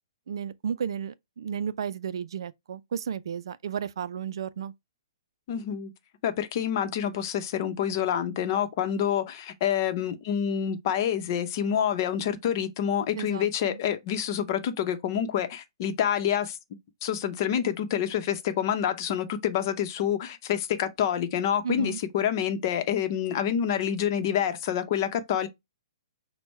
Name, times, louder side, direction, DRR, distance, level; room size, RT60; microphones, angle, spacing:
voice 1, 0.3-4.7 13.2-13.8 21.6-22.0, right 8 dB, 65° right, 0.4 m, -33 dB
voice 2, 5.5-5.9 6.2-16.6 17.0-25.5, left 9 dB, 45° left, 0.8 m, -27 dB
6.0 x 2.2 x 3.2 m
hypercardioid pair, 135°, 3 cm